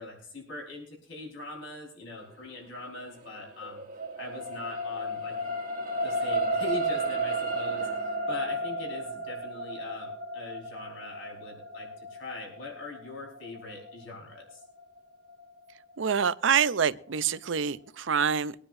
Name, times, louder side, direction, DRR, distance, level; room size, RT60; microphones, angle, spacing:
voice 1, 0.0-3.8 4.2-5.4 6.0-14.6, left 3 dB, 85° left, 4.7 m, -42 dB
sound 1, 3.2-15.7 16.2-16.3, right 1 dB, 45° right, 1.4 m, -33 dB
voice 2, 16.0-18.6, right 7 dB, 80° right, 0.6 m, -26 dB
23.0 x 9.9 x 2.6 m
head